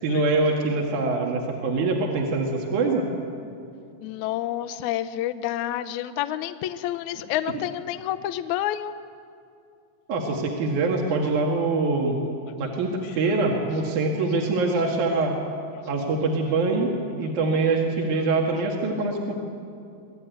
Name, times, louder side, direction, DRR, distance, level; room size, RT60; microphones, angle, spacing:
voice 1, 0.0-3.0 7.1-7.2 10.1-12.3 12.6-15.3 15.9-16.9 17.2-19.3, right 3 dB, 70° right, 0 dB, 3.1 m, -24 dB
voice 2, 4.0-8.9 18.2-18.3, left 12 dB, 75° left, 10 dB, 1.9 m, -29 dB
25.0 x 17.5 x 9.2 m, 2.5 s
omnidirectional pair, 3.7 m